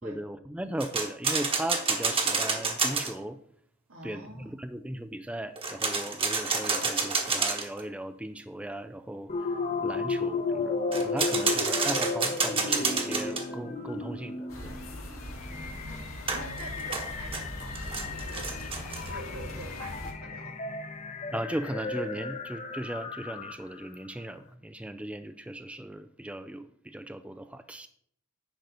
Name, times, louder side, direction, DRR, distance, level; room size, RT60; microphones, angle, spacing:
voice 1, 0.0-3.4 4.0-9.3 9.8-14.8 21.3-27.9, right 1 dB, 5° right, 10 dB, 0.3 m, -37 dB
sound 1, 0.8-3.1 5.6-7.8 10.9-13.4 16.3-19.1, right 4 dB, 25° right, 1.3 m, -29 dB
voice 2, 3.9-4.6 15.5-18.6 19.1-20.6, right 1 dB, 75° right, 0 dB, 2.5 m, -46 dB
sound 2, 9.3-23.9, left 3 dB, 35° left, 0.8 m, -34 dB
sound 3, 14.5-20.1, left 1 dB, 75° left, 2.1 m, -41 dB
10.0 x 4.0 x 6.7 m, 0.65 s
head